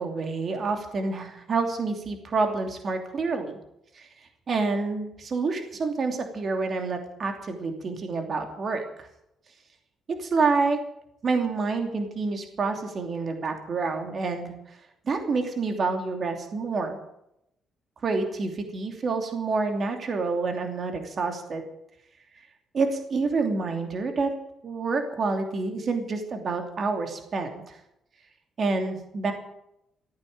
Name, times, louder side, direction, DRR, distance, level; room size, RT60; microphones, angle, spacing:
voice 1, 0.0-3.6 3.9-4.1 4.5-9.1 10.2-10.8 11.2-14.8 15.0-17.0 18.0-21.6 22.7-24.3 24.6-27.8 28.6-29.3, right 4 dB, 50° right, 4 dB, 2.8 m, -28 dB
15.5 x 9.4 x 9.4 m, 0.80 s
cardioid pair, 90°, 0 cm